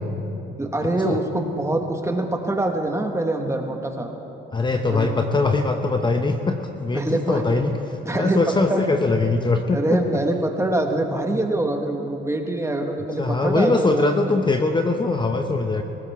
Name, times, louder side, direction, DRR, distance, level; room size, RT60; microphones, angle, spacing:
voice 1, 0.6-4.1 4.9-5.1 6.9-7.4 8.0-8.8 9.7-14.1, right 2 dB, 15° right, 3 dB, 1.5 m, -24 dB
voice 2, 4.5-10.0 13.2-15.8, left 3 dB, 25° left, 5 dB, 0.8 m, -22 dB
19.5 x 17.5 x 3.6 m, 2.9 s
cardioid pair, 90°, 20 cm